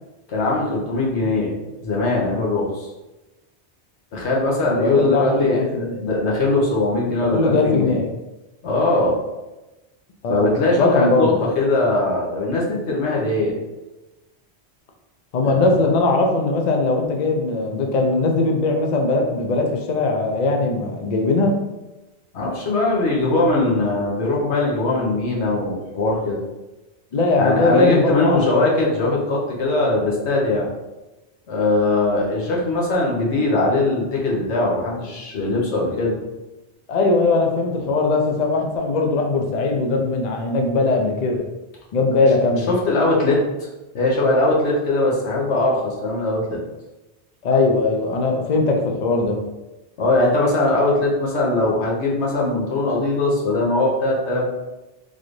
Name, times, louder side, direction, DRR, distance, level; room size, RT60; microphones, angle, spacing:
voice 1, 0.3-1.5 1.8-2.9 4.1-8.0 8.6-9.2 10.3-13.5 22.3-26.4 27.4-30.7 31.5-36.1 42.7-43.7 43.9-46.6 50.0-54.5, left 2 dB, 85° left, -3 dB, 1.2 m, -20 dB
voice 2, 4.7-6.0 7.2-8.1 10.2-10.5 10.7-11.3 15.3-21.6 27.1-28.4 36.9-41.4 41.9-42.7 47.4-49.4, left 3 dB, 50° left, 2 dB, 0.5 m, -20 dB
4.0 x 2.5 x 3.1 m, 1.0 s
omnidirectional pair, 1.1 m